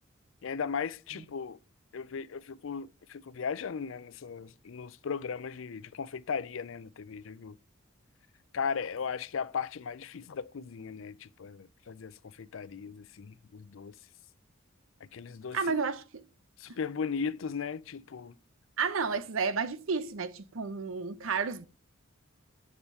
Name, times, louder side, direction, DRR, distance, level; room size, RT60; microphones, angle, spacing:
voice 1, 0.4-1.6 1.9-7.6 8.5-13.9 15.1-15.8 16.6-18.3, left 6 dB, 70° left, 0.5 m, -37 dB
voice 2, 15.5-16.2 18.8-21.7, right 5 dB, 80° right, 0.7 m, -31 dB
7.1 x 4.9 x 5.6 m
head